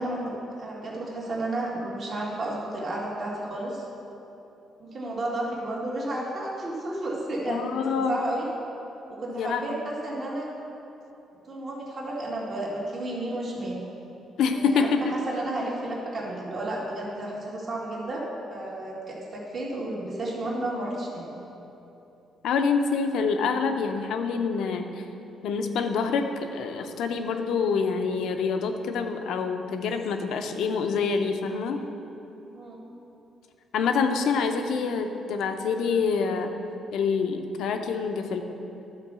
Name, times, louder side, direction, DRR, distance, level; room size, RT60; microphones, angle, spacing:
voice 1, 0.0-3.8 4.8-8.4 9.1-10.5 11.5-13.8 14.5-14.9 15.3-18.2 18.5-21.3 32.5-32.8, right 1 dB, 50° right, -5 dB, 2.1 m, -32 dB
voice 2, 7.5-8.2 9.3-9.8 14.4-15.1 22.4-25.0 25.4-31.8 33.7-36.5 36.9-38.4, left 5 dB, 80° left, 6 dB, 0.7 m, -26 dB
11.5 x 4.5 x 6.8 m, 3.0 s
cardioid pair, 90°, 0 cm